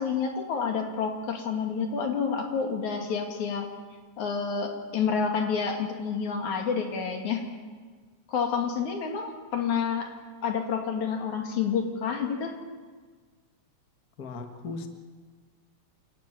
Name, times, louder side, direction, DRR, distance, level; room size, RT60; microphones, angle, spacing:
voice 1, 0.0-3.7 4.2-7.4 8.3-10.1 10.4-12.5, left 6 dB, 85° left, 3 dB, 3.8 m, -29 dB
voice 2, 14.2-14.9, left 3 dB, 40° left, 5 dB, 1.9 m, -37 dB
29.0 x 12.5 x 9.1 m, 1.5 s
omnidirectional pair, 3.3 m